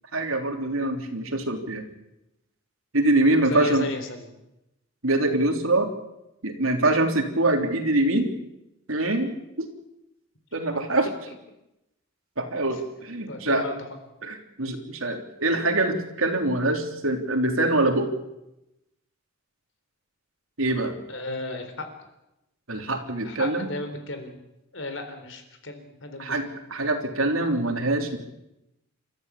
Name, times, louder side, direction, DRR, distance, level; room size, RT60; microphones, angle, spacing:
voice 1, 0.1-1.8 2.9-3.9 5.0-5.9 6.4-8.3 8.9-9.7 10.5-11.1 12.4-13.6 14.2-18.1 20.6-20.9 22.7-23.7 26.2-28.2, right 2 dB, 85° right, 4 dB, 3.4 m, -24 dB
voice 2, 3.5-4.4 11.0-11.1 12.7-12.8 13.3-13.9 21.1-21.9 23.2-24.4 24.7-26.5, left 2 dB, 65° left, 7 dB, 4.0 m, -35 dB
29.0 x 14.0 x 8.4 m, 0.91 s
head